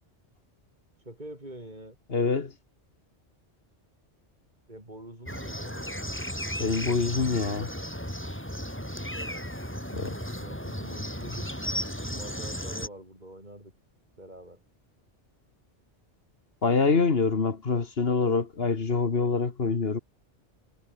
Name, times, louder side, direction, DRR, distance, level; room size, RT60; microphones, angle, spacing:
voice 1, 1.0-2.0 4.7-5.8 10.1-11.5 12.0-13.7 14.2-14.6, right 1 dB, 40° right, 6.6 m, -45 dB
voice 2, 2.1-2.5 6.6-7.7 9.9-10.2 16.6-20.0, left 4 dB, 60° left, 1.9 m, -25 dB
sound 1, 5.3-12.9, equal, 10° left, 7.7 m, -35 dB
omnidirectional pair, 1.2 m